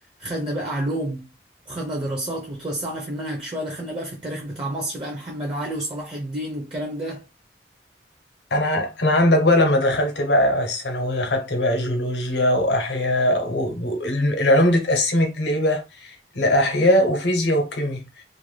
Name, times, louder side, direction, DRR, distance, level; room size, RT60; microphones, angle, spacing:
voice 1, 0.2-1.3 1.7-7.2, right 1 dB, 30° right, 0.5 m, -29 dB
voice 2, 8.5-18.0, left 1 dB, 75° left, 0.7 m, -20 dB
2.4 x 2.1 x 3.2 m
head